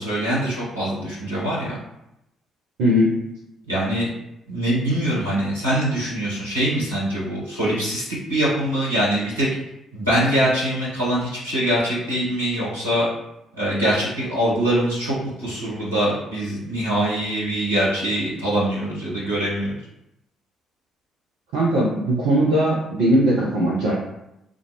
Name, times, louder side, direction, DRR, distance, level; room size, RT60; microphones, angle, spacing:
voice 1, 0.0-1.8 3.7-4.1 4.5-9.5 9.9-13.1 13.6-19.8, right 1 dB, 85° right, -9 dB, 1.1 m, -23 dB
voice 2, 2.8-3.2 21.5-23.9, equal, 65° right, -4 dB, 0.5 m, -19 dB
3.7 x 2.2 x 2.9 m, 0.85 s
figure-of-eight pair, 45°, 0 cm